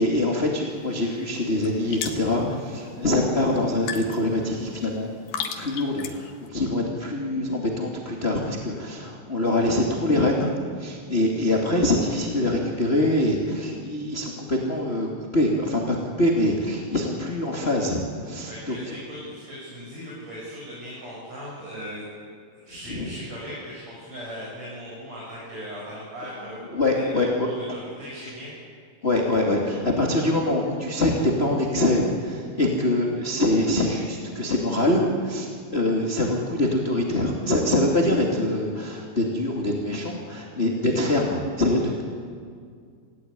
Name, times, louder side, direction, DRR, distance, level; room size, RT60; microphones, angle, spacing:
voice 1, 0.0-5.1 5.6-10.5 10.8-19.0 22.9-23.1 26.7-27.5 29.0-42.0, left 1 dB, 20° left, -2 dB, 2.0 m, -24 dB
sound 1, 0.7-6.5, left 7 dB, 75° left, 3.4 m, -38 dB
voice 2, 18.5-22.1 22.5-28.5, equal, 40° right, -7 dB, 8.1 m, -38 dB
26.5 x 17.0 x 9.8 m, 2.1 s
omnidirectional pair, 4.7 m